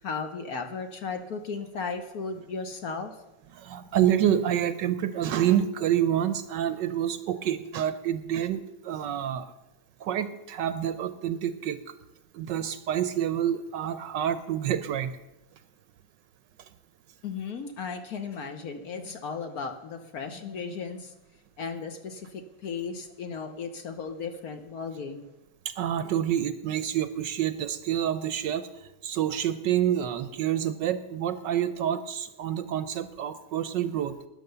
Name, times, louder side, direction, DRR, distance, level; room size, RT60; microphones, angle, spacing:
voice 1, 0.0-3.2 17.2-21.1 21.6-25.3, left 5 dB, 55° left, 7 dB, 1.2 m, -35 dB
voice 2, 3.5-9.5 10.0-11.8 12.3-15.1 25.6-28.7 29.0-34.2, right 10 dB, 70° right, 12 dB, 1.2 m, -28 dB
12.5 x 10.0 x 6.7 m, 1.0 s
omnidirectional pair, 2.2 m